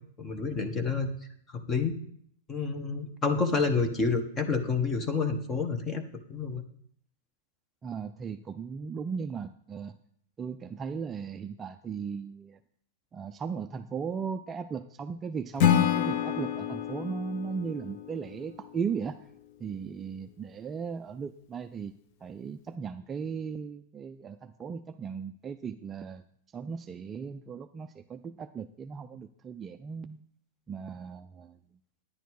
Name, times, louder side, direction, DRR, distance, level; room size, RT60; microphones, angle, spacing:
voice 1, 0.2-1.1 1.5-1.9 2.5-6.0 6.3-6.6, left 4 dB, 15° left, 7 dB, 1.1 m, -29 dB
voice 2, 7.8-9.9 10.4-12.6 13.1-19.2 19.6-21.9 22.2-26.2 26.5-30.2 30.7-31.6, right 6 dB, 15° right, 8 dB, 0.3 m, -37 dB
Acoustic guitar / Strum, 15.6-18.8, left 9 dB, 40° left, 0.8 m, -28 dB
10.0 x 9.2 x 4.7 m, 0.67 s
hypercardioid pair, 150°, 0 cm